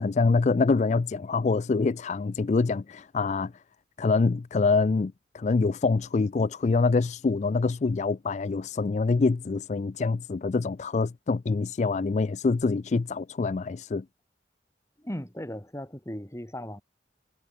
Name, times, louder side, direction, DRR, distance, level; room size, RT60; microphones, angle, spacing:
voice 1, 0.0-3.5 4.0-14.0, left 4 dB, 40° left, 0.4 m, -25 dB
voice 2, 15.0-16.8, equal, 15° left, 3.2 m, -37 dB
head